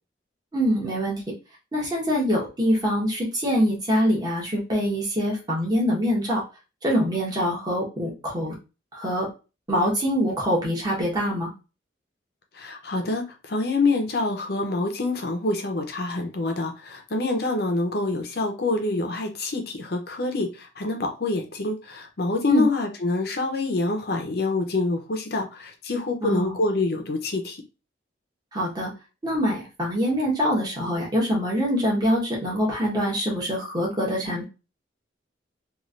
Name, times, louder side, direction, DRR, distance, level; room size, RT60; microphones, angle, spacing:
voice 1, 0.5-1.2 1.7-6.4 6.8-8.5 8.9-9.3 9.7-11.5 22.5-22.6 26.2-26.6 28.5-28.9 29.2-34.4, equal, 20° right, 1.1 m, -24 dB
voice 2, 12.5-27.6, left 2 dB, 55° left, 0.6 m, -26 dB
3.1 x 2.4 x 2.5 m
head